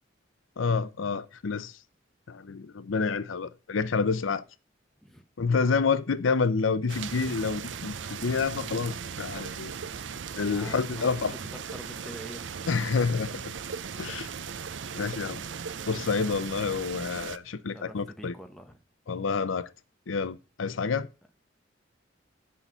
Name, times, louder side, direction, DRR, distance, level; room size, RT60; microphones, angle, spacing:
voice 1, 0.6-1.8 2.3-4.4 5.4-9.7 10.4-11.3 12.7-13.3 14.0-14.3 14.9-15.4 15.9-18.3 19.1-19.7 20.1-21.1, left 5 dB, 90° left, 0.6 m, -28 dB
sound 1, 6.9-17.4, right 6 dB, 75° right, 0.6 m, -38 dB
voice 2, 10.5-12.9 17.7-18.8, equal, ahead, 1.0 m, -46 dB
8.5 x 5.7 x 6.7 m
head